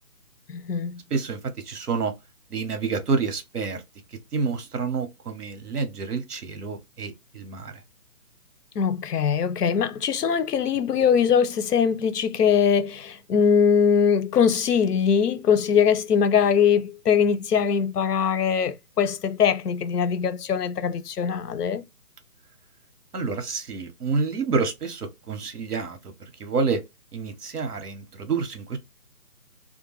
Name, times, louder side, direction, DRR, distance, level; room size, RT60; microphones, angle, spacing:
voice 1, 0.5-1.0 8.8-21.8, left 7 dB, 85° left, 0.6 m, -22 dB
voice 2, 1.1-2.1 2.5-3.8 4.3-7.7 23.1-26.0 26.4-26.8 27.1-28.8, right 4 dB, 75° right, 1.0 m, -28 dB
2.4 x 2.2 x 3.0 m
hypercardioid pair, 180°, 46 cm